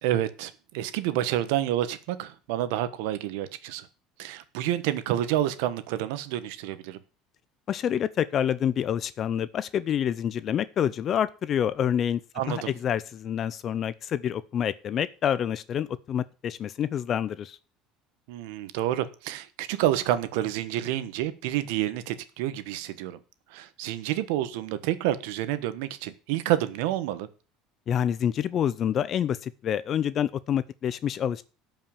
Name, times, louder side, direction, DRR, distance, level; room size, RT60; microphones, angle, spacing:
voice 1, 0.0-3.9 4.2-7.0 12.4-12.7 18.3-23.2 23.5-27.3, right 13 dB, 80° right, 13 dB, 1.2 m, -29 dB
voice 2, 7.7-12.2 12.5-17.6 27.9-31.4, left 9 dB, 35° left, 17 dB, 0.5 m, -27 dB
12.5 x 5.6 x 7.1 m, 0.36 s
cardioid pair, 140°, 0 cm